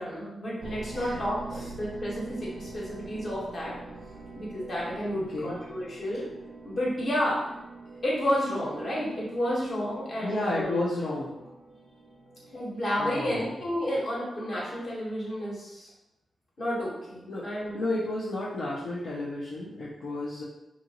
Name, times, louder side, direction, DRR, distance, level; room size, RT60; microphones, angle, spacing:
voice 1, 0.0-3.7 4.3-6.3 6.6-7.6 8.0-10.8 12.5-15.9 16.6-17.9, equal, 55° left, -5 dB, 1.3 m, -31 dB
sound 1, 0.6-14.6, right 3 dB, 70° right, 0.4 m, -45 dB
voice 2, 5.1-5.6 10.2-11.4 13.0-13.5 17.3-17.5 17.7-20.4, left 2 dB, 80° left, -7 dB, 0.5 m, -32 dB
2.8 x 2.4 x 2.9 m, 0.93 s
cardioid pair, 65°, 0 cm